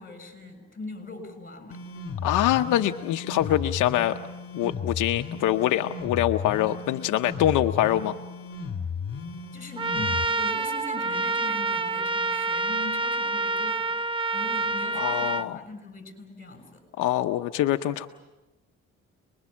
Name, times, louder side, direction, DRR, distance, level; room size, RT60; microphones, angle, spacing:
voice 1, 0.0-1.8 9.5-16.8, left 2 dB, 30° left, 9 dB, 6.7 m, -41 dB
sound 1, 1.7-10.3, left 5 dB, 50° left, 2.4 m, -35 dB
voice 2, 2.2-4.2 4.5-8.2 14.9-15.6 17.0-18.1, left 13 dB, 85° left, 7 dB, 0.8 m, -24 dB
Trumpet, 9.8-15.5, right 3 dB, 15° right, 0.8 m, -27 dB
28.0 x 21.5 x 7.3 m, 1.1 s
cardioid pair, 90°, 30 cm